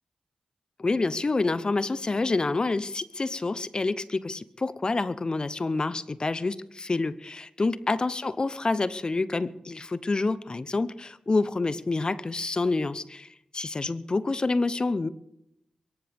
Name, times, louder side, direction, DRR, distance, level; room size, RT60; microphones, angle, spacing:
voice 1, 0.8-13.3 13.5-15.1, left 3 dB, 40° left, 16 dB, 0.7 m, -28 dB
23.5 x 14.5 x 3.5 m, 0.81 s
cardioid pair, 45°, 2 cm